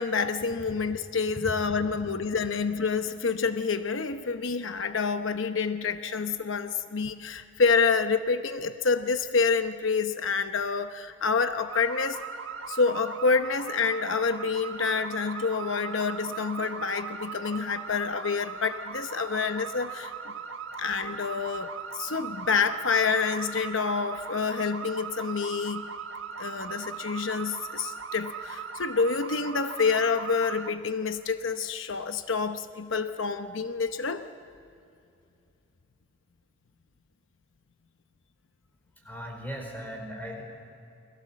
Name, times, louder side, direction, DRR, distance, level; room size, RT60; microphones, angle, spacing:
voice 1, 0.0-12.2 12.7-20.3 20.8-25.9 26.4-34.2, left 5 dB, 80° left, 8 dB, 0.9 m, -28 dB
sound 1, 11.7-30.7, right 6 dB, 85° right, 1.4 m, -39 dB
voice 2, 39.0-40.4, equal, 10° left, 1 dB, 5.0 m, -37 dB
29.0 x 21.5 x 7.5 m, 2.6 s
head